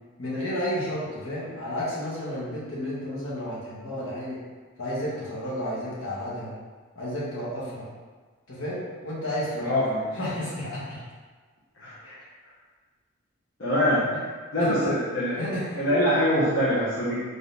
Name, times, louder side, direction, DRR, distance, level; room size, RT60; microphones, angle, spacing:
voice 1, 0.2-4.4 4.8-6.5 6.9-7.9 8.5-9.8 10.1-11.0 12.0-12.2 14.6-15.0 15.4-16.0, equal, 85° left, -7 dB, 1.3 m, -32 dB
voice 2, 9.6-10.0 11.8-11.9 13.6-14.0 14.5-15.3 15.8-17.2, equal, 70° left, -10 dB, 0.8 m, -23 dB
3.6 x 3.6 x 2.7 m, 1.4 s
head